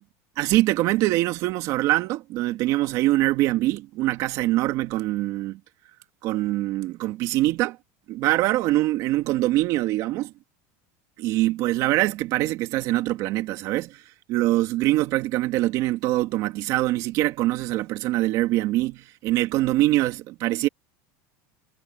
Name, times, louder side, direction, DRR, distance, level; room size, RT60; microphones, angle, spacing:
voice 1, 0.4-5.6 6.2-7.8 8.1-10.3 11.2-14.0 14.3-20.7, right 17 dB, 50° right, 2.2 m, -23 dB
supercardioid pair, 145°, 7 cm